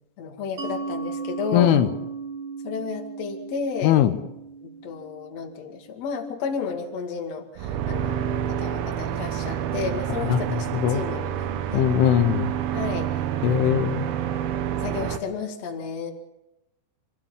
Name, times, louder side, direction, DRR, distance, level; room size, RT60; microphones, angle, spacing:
voice 1, 0.2-1.8 2.6-4.0 4.6-11.9 12.7-13.1 13.4-14.5 14.8-16.1, left 5 dB, 45° left, 3 dB, 2.7 m, -33 dB
Mallet percussion, 0.6-6.0, right 4 dB, 50° right, 1.5 m, -36 dB
voice 2, 1.5-1.9 3.8-4.1 10.3-10.4 10.7-11.0 11.7-12.5 13.4-14.1, left 10 dB, 85° left, 10 dB, 3.5 m, -20 dB
sound 1, 7.6-15.2, right 10 dB, 80° right, 3.4 m, -28 dB
26.5 x 15.5 x 7.3 m, 0.89 s
omnidirectional pair, 5.5 m